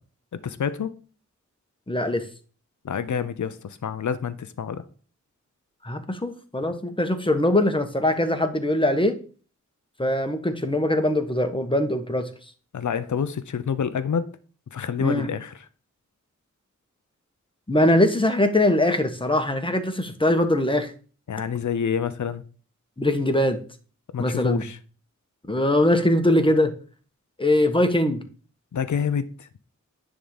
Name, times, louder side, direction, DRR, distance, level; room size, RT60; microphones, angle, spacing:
voice 1, 0.4-0.9 2.8-4.8 12.7-14.3 14.7-15.5 21.3-22.4 24.1-24.8 28.7-29.5, left 7 dB, 75° left, 0.6 m, -27 dB
voice 2, 1.9-2.3 5.8-9.2 10.0-12.3 15.0-15.3 17.7-20.9 23.0-23.6 24.2-24.7 25.5-26.7 27.4-28.2, left 1 dB, 15° left, 1.3 m, -22 dB
10.0 x 3.8 x 7.0 m
wide cardioid pair, 70°, 30 cm